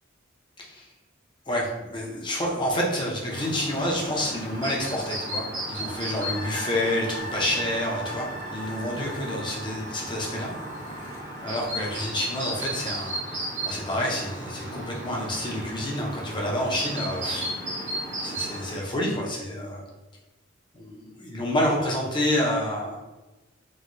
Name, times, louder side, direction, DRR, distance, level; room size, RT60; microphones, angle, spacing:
voice 1, 0.6-0.9 1.5-10.5 11.4-13.2 13.7-17.5 18.2-19.8 20.7-23.0, left 1 dB, 25° left, -2 dB, 0.6 m, -28 dB
Chirp tweet, 3.3-18.8, right 1 dB, 40° right, 0.7 m, -35 dB
sound 1, 6.3-13.6 14.0-14.1, right 1 dB, 70° left, 0.4 m, -41 dB
3.0 x 2.6 x 2.6 m, 1.1 s
head